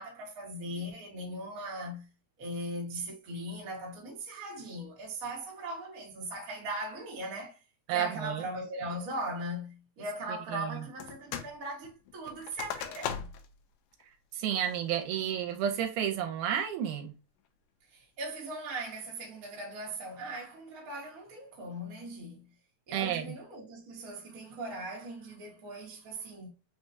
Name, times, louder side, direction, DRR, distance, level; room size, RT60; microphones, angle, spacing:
voice 1, 0.0-2.1 2.4-7.6 7.9-13.3 17.9-22.5 22.9-26.5, right 1 dB, 55° right, 1.0 m, -39 dB
voice 2, 7.9-8.5 10.5-10.7 14.3-17.1 22.9-23.3, right 9 dB, 80° right, 2.1 m, -31 dB
sound 1, 11.0-11.6 11.8-13.5 14.0-14.1 14.6-15.0 15.5-15.9, left 9 dB, 90° left, 2.2 m, -39 dB
5.4 x 2.3 x 2.5 m
omnidirectional pair, 3.7 m